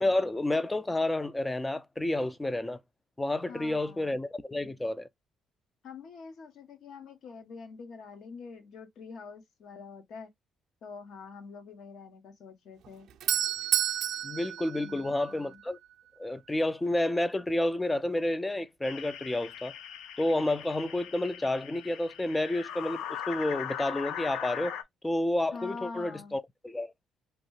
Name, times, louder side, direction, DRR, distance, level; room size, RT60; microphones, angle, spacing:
voice 1, 0.0-2.8 3.2-5.1 14.2-15.8 16.2-19.7 20.2-24.8 25.0-26.9, left 1 dB, 10° left, 0.3 m, -30 dB
voice 2, 3.5-4.1 5.8-10.3 10.8-13.1 14.8-15.6 25.5-26.4, left 4 dB, 60° left, 0.9 m, -45 dB
Doorbell, 12.8-15.7, right 11 dB, 70° right, 0.4 m, -31 dB
sound 1, 18.8-24.8, left 9 dB, 85° left, 0.5 m, -40 dB
2.9 x 2.7 x 3.0 m
cardioid pair, 130°, 0 cm